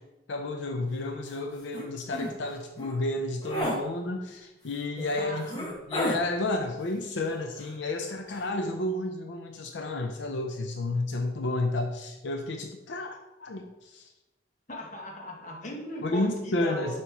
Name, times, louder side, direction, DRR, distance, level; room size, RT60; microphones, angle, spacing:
voice 1, 0.3-14.1 16.0-17.0, left 2 dB, 80° left, 4 dB, 0.5 m, -31 dB
sound 1, 1.3-1.4 1.7-1.9 2.1-2.3 2.8-2.9 3.4-3.8 4.7-4.8 5.4-6.2 7.5-8.0 8.3-8.5, equal, 25° left, 1.3 m, -32 dB
voice 2, 5.0-5.6 14.7-17.0, left 1 dB, 40° left, -1 dB, 1.2 m, -38 dB
6.9 x 3.0 x 4.7 m, 0.97 s
head